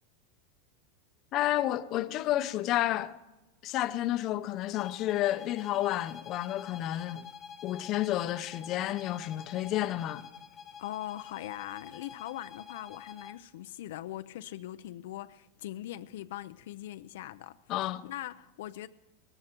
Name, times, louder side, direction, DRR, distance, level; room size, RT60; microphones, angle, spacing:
voice 1, 1.3-3.2 3.6-7.3 7.6-10.3 17.7-18.1, left 14 dB, 40° left, 0.7 m, -30 dB
sound 1, 4.7-13.5, left 7 dB, 25° left, 1.2 m, -48 dB
voice 2, 10.8-17.6 18.0-18.9, left 14 dB, 75° left, 0.5 m, -41 dB
18.0 x 13.5 x 4.5 m
supercardioid pair, 145°, 0 cm